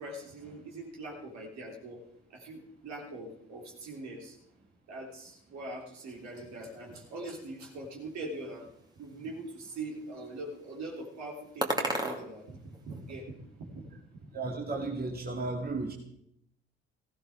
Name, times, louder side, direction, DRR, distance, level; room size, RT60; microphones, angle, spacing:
voice 1, 0.0-2.0 2.3-4.4 4.9-8.7 9.0-13.9, right 2 dB, 60° right, -2 dB, 3.5 m, -42 dB
sound 1, 6.0-13.2, right 1 dB, 15° right, 2.3 m, -40 dB
voice 2, 14.3-15.9, right 3 dB, 30° right, -1 dB, 2.4 m, -34 dB
16.5 x 16.5 x 3.7 m, 0.74 s
figure-of-eight pair, 45°, 31 cm